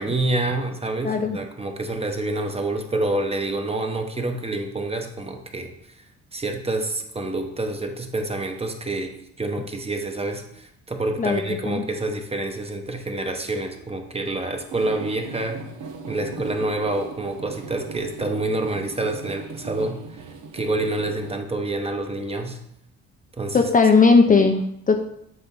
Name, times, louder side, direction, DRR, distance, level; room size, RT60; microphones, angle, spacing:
voice 1, 0.0-5.7 6.3-9.1 9.4-15.6 16.1-20.2 20.5-22.6 23.4-23.7 24.3-24.5, right 2 dB, 20° right, 4 dB, 0.9 m, -27 dB
voice 2, 1.0-1.4 11.2-11.8 23.5-25.0, left 4 dB, 30° left, 5 dB, 0.6 m, -18 dB
sound 1, 14.7-21.4, right 5 dB, 90° right, 0.8 m, -38 dB
7.7 x 2.9 x 5.4 m, 0.76 s
cardioid pair, 90°, 30 cm